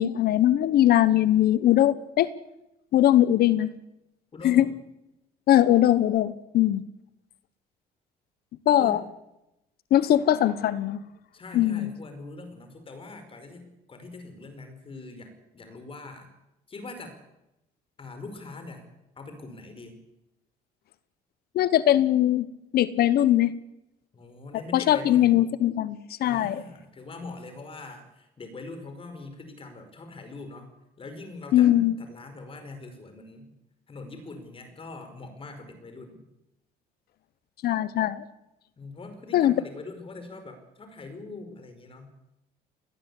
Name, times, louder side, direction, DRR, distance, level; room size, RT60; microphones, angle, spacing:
voice 1, 0.0-2.3 2.9-3.7 4.4-4.6 5.5-6.8 8.7-9.0 9.9-11.0 11.5-11.9 21.5-22.5 22.7-23.5 24.7-26.6 31.5-31.9 37.6-38.2 39.3-39.5, left 12 dB, 65° left, 16 dB, 1.1 m, -21 dB
voice 2, 4.3-4.7 8.8-9.0 11.3-16.3 16.7-17.2 18.0-18.9 19.2-20.0 24.1-25.4 26.2-30.7 31.0-33.5 33.9-36.2 38.8-42.1, left 3 dB, 30° left, 8 dB, 5.2 m, -42 dB
21.5 x 18.5 x 8.5 m, 0.90 s
cardioid pair, 110°, 17 cm